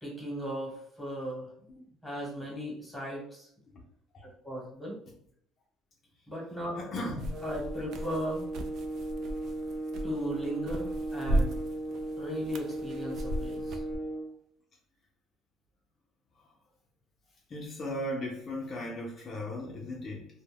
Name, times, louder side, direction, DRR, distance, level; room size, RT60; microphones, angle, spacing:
voice 1, 0.0-3.5 4.2-5.0 6.3-6.9 7.4-8.4 10.0-11.6 12.2-13.8, equal, ahead, -4 dB, 1.2 m, -37 dB
voice 2, 6.8-7.4 16.4-16.5 17.5-20.3, left 1 dB, 40° left, -2 dB, 0.5 m, -37 dB
sound 1, 7.2-14.0, right 1 dB, 60° right, 0.3 m, -36 dB
sound 2, 7.3-14.3, right 1 dB, 25° right, 0.7 m, -37 dB
2.2 x 2.1 x 3.3 m, 0.67 s
cardioid pair, 110°, 0 cm